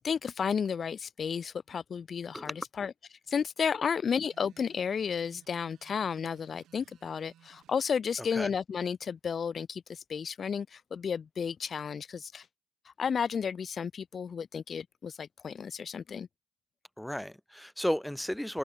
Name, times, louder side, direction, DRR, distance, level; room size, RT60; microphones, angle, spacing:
voice 1, 0.0-2.9 3.3-12.5 12.8-16.3, left 6 dB, 40° left, 0.5 m, -32 dB
voice 2, 2.3-2.6 8.3-8.5 17.0-18.6, equal, 5° left, 1.3 m, -33 dB
sound 1, 4.1-7.8, right 12 dB, 60° right, 5.5 m, -62 dB
open air
hypercardioid pair, 55°, 0 cm